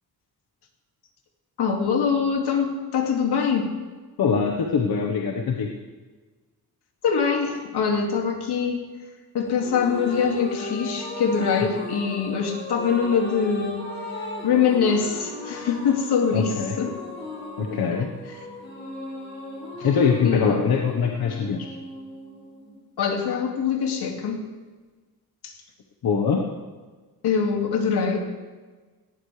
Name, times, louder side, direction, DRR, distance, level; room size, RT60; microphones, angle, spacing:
voice 1, 1.6-3.7 7.0-8.8 9.3-13.8 14.4-17.0 17.7-17.8 20.2-20.6 23.0-24.4 25.4-25.5 27.2-28.2, left 6 dB, 85° left, 2 dB, 2.5 m, -23 dB
voice 2, 4.2-5.7 16.3-16.8 17.6-18.1 19.8-21.7 26.0-26.4, left 6 dB, 65° left, 1 dB, 1.5 m, -23 dB
sound 1, 9.4-23.0, left 1 dB, 25° left, 4.1 m, -36 dB
18.5 x 17.0 x 3.4 m, 1.3 s
wide cardioid pair, 130°, 39 cm